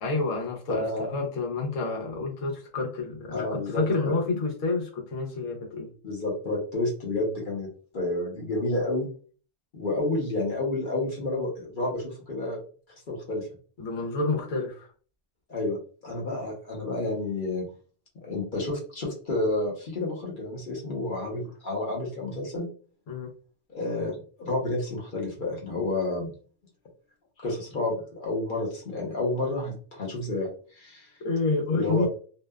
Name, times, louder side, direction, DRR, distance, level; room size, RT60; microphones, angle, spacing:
voice 1, 0.0-0.9 1.1-5.9 13.8-14.9 23.1-23.3 31.2-32.1, left 3 dB, 90° left, 0 dB, 1.2 m, -29 dB
voice 2, 0.7-1.1 3.3-4.1 6.0-7.7 7.9-9.1 9.7-12.6 13.1-13.5 15.5-17.7 18.2-22.7 23.7-26.3 27.4-31.1 31.7-32.1, left 2 dB, 45° left, -1 dB, 0.9 m, -30 dB
2.8 x 2.1 x 2.2 m, 0.41 s
omnidirectional pair, 1.3 m